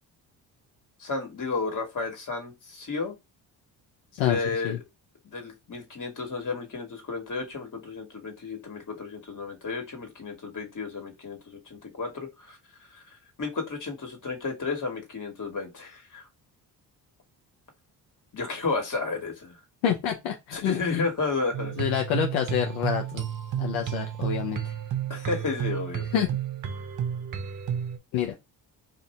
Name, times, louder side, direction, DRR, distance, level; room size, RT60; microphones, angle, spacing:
voice 1, 1.0-3.1 4.2-4.8 5.3-12.6 12.9-13.0 13.4-16.2 18.3-19.6 20.5-21.7 25.1-26.0, left 4 dB, 40° left, 1.6 m, -32 dB
voice 2, 19.8-21.1 21.8-23.2 23.6-24.6 26.1-26.3 28.1-28.3, left 9 dB, 85° left, 0.7 m, -27 dB
sound 1, 21.5-28.0, right 10 dB, 40° right, 0.8 m, -32 dB
2.6 x 2.6 x 4.2 m
supercardioid pair, 60°, 46 cm